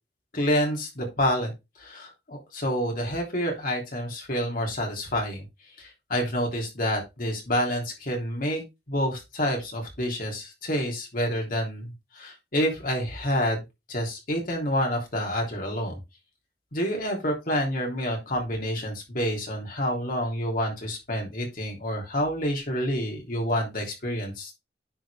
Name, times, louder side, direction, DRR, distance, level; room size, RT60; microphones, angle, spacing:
voice 1, 0.3-1.5 1.8-5.4 5.8-8.6 8.9-13.6 13.9-16.0 16.7-24.5, equal, 50° left, 1 dB, 3.2 m, -28 dB
10.0 x 4.7 x 3.5 m, 0.23 s
head